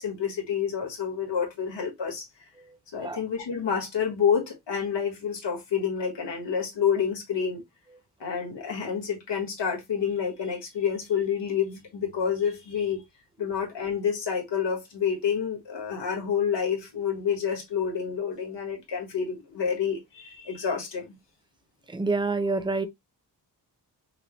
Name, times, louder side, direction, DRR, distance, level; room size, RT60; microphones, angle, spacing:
voice 1, 0.0-2.2 2.9-7.6 8.2-13.0 13.4-21.1, left 7 dB, 85° left, 1.5 m, -28 dB
voice 2, 21.9-22.9, right 3 dB, 10° right, 0.5 m, -27 dB
5.9 x 2.0 x 3.1 m
wide cardioid pair, 160°, 42 cm